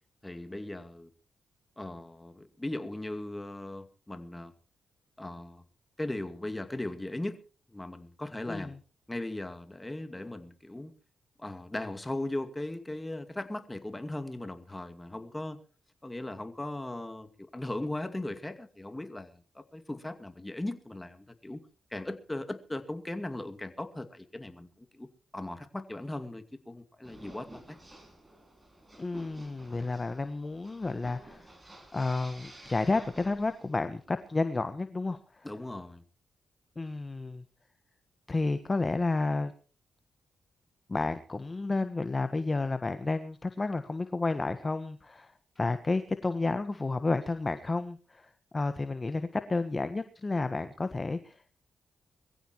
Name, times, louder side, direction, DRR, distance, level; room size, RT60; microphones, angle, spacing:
voice 1, 0.2-1.1 1.8-4.5 5.2-5.6 6.0-7.4 7.7-8.8 9.1-10.9 11.4-15.6 16.0-21.6 21.9-25.1 25.3-27.8 35.4-36.0, left 1 dB, 15° left, 2.3 m, -38 dB
sound 1, 27.0-33.9, right 1 dB, 25° right, 5.9 m, -52 dB
voice 2, 29.0-31.5 31.9-35.5 36.8-37.4 38.3-39.5 40.9-51.5, left 3 dB, 35° left, 1.3 m, -31 dB
23.0 x 15.0 x 3.1 m
supercardioid pair, 50°, 0 cm